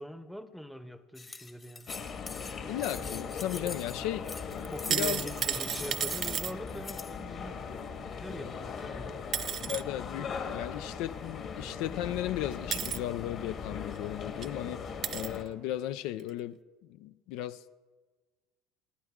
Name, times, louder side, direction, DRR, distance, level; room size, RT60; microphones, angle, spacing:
voice 1, 0.0-1.9 3.6-3.7 4.6-7.6 8.1-9.3 9.7-9.8, equal, ahead, 0.8 m, -42 dB
sound 1, 1.2-7.2, left 4 dB, 25° left, 1.1 m, -44 dB
sound 2, 1.9-15.4, left 6 dB, 45° left, 1.6 m, -39 dB
voice 2, 2.7-4.2 4.5-5.3 9.7-17.7, left 13 dB, 70° left, 0.4 m, -36 dB
sound 3, 4.6-6.5 8.8-8.9 9.3-9.8 11.7-11.8 12.7-13.0 14.0-14.1 14.4-14.5 15.0-15.4 16.2-16.3, right 9 dB, 40° right, 0.4 m, -32 dB
27.0 x 9.4 x 3.7 m
supercardioid pair, 120°, 0 cm